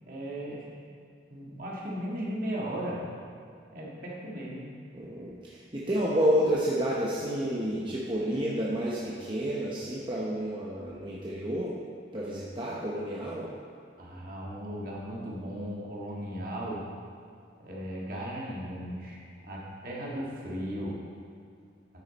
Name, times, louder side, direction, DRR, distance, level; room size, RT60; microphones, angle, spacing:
voice 1, 0.1-0.9 1.3-3.0 3.7-4.7 14.0-16.8 17.6-21.0, equal, 50° right, -4 dB, 1.8 m, -36 dB
voice 2, 4.9-11.7 12.1-13.4, equal, 25° right, -6 dB, 0.9 m, -30 dB
10.0 x 6.5 x 4.1 m, 2.4 s
head